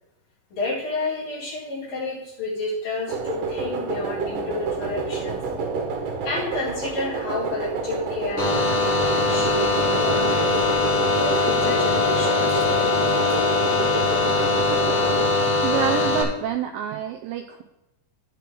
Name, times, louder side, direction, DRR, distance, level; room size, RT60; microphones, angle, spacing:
voice 1, 0.5-5.4 6.3-10.6 11.2-12.7, left 2 dB, 55° left, -7 dB, 5.8 m, -30 dB
sound 1, 3.1-15.3, right 4 dB, 65° right, 2.8 m, -29 dB
sound 2, 8.4-16.2, left 3 dB, 35° left, 2.9 m, -21 dB
voice 2, 15.6-17.6, right 10 dB, 85° right, 6 dB, 2.1 m, -27 dB
16.5 x 5.9 x 3.8 m, 0.91 s
omnidirectional pair, 4.8 m